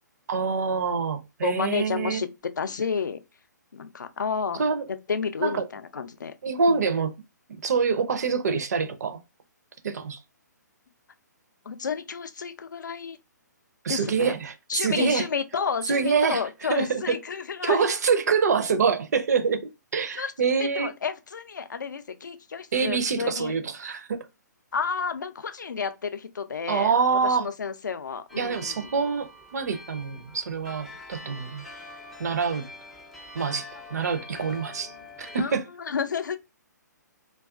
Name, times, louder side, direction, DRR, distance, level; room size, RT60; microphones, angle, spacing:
voice 1, 0.3-2.2 4.5-4.8 5.4-5.6 6.4-7.1 7.5-9.2 9.8-10.2 13.8-15.3 15.9-17.2 17.6-20.9 22.7-24.3 26.7-27.5 28.4-31.6 32.2-32.7 33.3-35.6, right 5 dB, 60° right, 0.5 m, -26 dB
voice 2, 1.4-2.3 2.6-3.2 3.7-4.6 5.1-6.3 6.7-6.9 11.7-13.2 13.9-14.3 14.7-17.9 20.1-20.3 20.6-23.5 24.7-26.9 27.2-28.9 35.4-35.5 35.8-36.4, left 6 dB, 75° left, 0.4 m, -31 dB
sound 1, 28.3-35.4, left 2 dB, ahead, 0.4 m, -45 dB
2.3 x 2.3 x 2.4 m
figure-of-eight pair, 130°, 10 cm